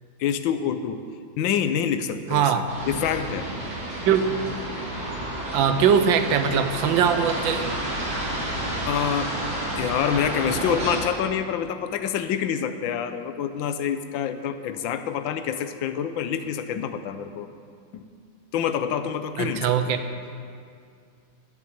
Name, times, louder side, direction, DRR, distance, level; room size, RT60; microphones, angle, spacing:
voice 1, 0.2-1.0 1.4-3.5 8.8-9.3 9.8-17.5 17.9-18.0 18.5-19.7, left 8 dB, 85° left, 10 dB, 1.5 m, -27 dB
voice 2, 2.3-2.6 4.0-4.4 5.5-7.8 19.4-20.0, right 7 dB, 85° right, 9 dB, 1.5 m, -21 dB
sound 1, 2.7-11.0, right 1 dB, 55° right, 2.9 m, -30 dB
12.5 x 7.2 x 8.6 m, 2.3 s
omnidirectional pair, 2.0 m